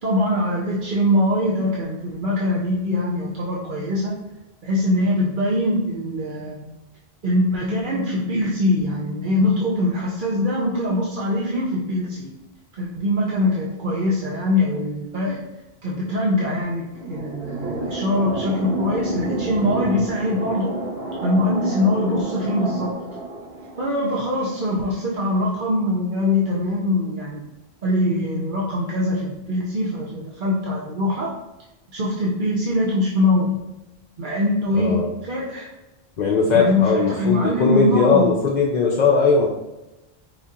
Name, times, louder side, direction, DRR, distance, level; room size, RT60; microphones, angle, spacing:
voice 1, 0.0-4.2 4.6-6.6 7.2-12.3 12.8-15.4 15.8-20.7 21.2-23.0 23.8-27.4 27.8-31.3 31.9-33.6 34.2-35.7 36.5-38.3, left 1 dB, 55° right, -4 dB, 0.9 m, -22 dB
sound 1, 16.6-25.0, right 2 dB, 75° right, 1.1 m, -30 dB
voice 2, 34.7-35.1 36.2-39.5, left 4 dB, 50° left, -1 dB, 0.6 m, -19 dB
5.1 x 2.8 x 3.6 m, 1.0 s
omnidirectional pair, 1.1 m